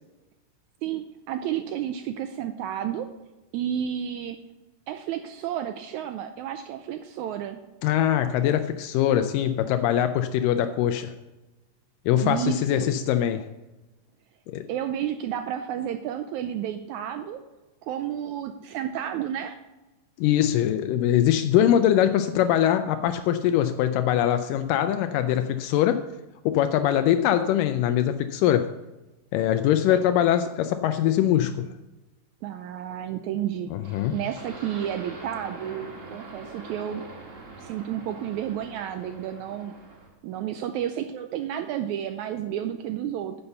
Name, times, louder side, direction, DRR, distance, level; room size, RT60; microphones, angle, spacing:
voice 1, 0.8-3.1 3.5-4.4 4.9-7.6 12.2-12.9 14.7-17.4 17.8-19.6 29.9-30.0 32.4-37.1 37.6-39.7 40.2-43.4, right 10 dB, 85° right, 8 dB, 1.7 m, -31 dB
voice 2, 7.8-11.1 12.1-13.5 14.5-14.6 20.2-26.1 26.5-28.7 29.3-31.7 33.7-34.2, left 11 dB, 85° left, 9 dB, 2.2 m, -22 dB
sound 1, 33.8-40.1, right 3 dB, 30° right, 1.6 m, -43 dB
9.7 x 6.8 x 6.8 m, 1.1 s
omnidirectional pair, 3.8 m